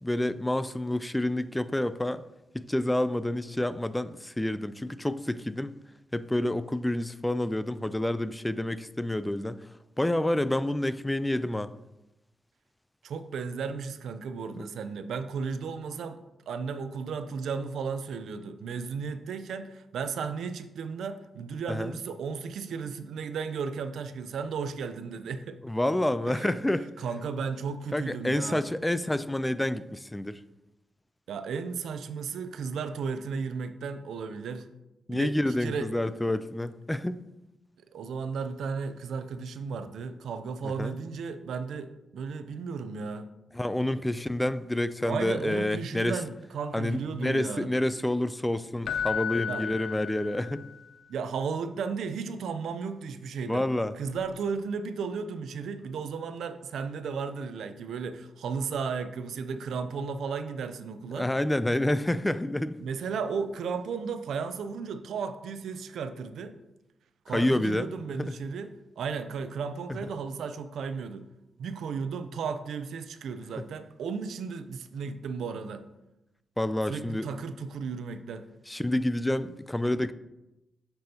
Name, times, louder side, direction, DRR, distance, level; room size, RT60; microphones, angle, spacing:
voice 1, 0.0-2.2 2.5-5.8 6.1-9.7 10.0-11.7 14.6-14.7 21.7-21.9 25.6-26.8 27.9-30.4 35.1-37.2 40.6-41.0 43.5-46.2 46.7-50.6 53.4-53.9 61.1-62.8 67.3-67.9 68.2-68.3 76.6-77.3 78.7-80.1, left 1 dB, 10° left, 14 dB, 0.4 m, -28 dB
voice 2, 13.0-16.2 16.5-25.6 26.3-26.5 27.0-28.6 31.3-34.7 35.1-35.3 35.6-35.9 37.9-43.3 45.1-47.7 49.5-49.7 51.1-53.7 54.0-61.3 62.8-66.5 67.3-68.7 69.0-71.3 71.6-75.8 76.9-78.4, right 5 dB, 80° right, 10 dB, 0.5 m, -34 dB
Keyboard (musical), 48.8-50.8 54.1-54.2, left 8 dB, 75° left, 0.4 m, -33 dB
7.6 x 6.8 x 2.9 m, 0.94 s
cardioid pair, 70°, 0 cm